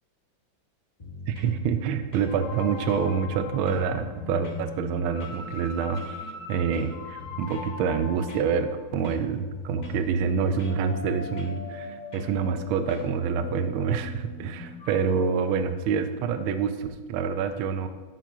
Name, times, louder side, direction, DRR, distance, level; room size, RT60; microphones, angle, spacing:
sound 1, 1.0-1.6 2.1-2.6 2.9-4.7 5.2-5.4 6.0-6.2 6.7-7.8 8.3-8.8 9.0-10.8 11.4-11.6 12.1-12.4 12.9-13.1, equal, 35° left, 0.7 m, -42 dB
voice 1, 1.3-17.9, right 6 dB, 80° right, 9 dB, 1.4 m, -27 dB
sound 2, 2.3-15.0, left 3 dB, 70° left, 2.3 m, -41 dB
10.5 x 8.3 x 2.4 m, 1.3 s
omnidirectional pair, 2.3 m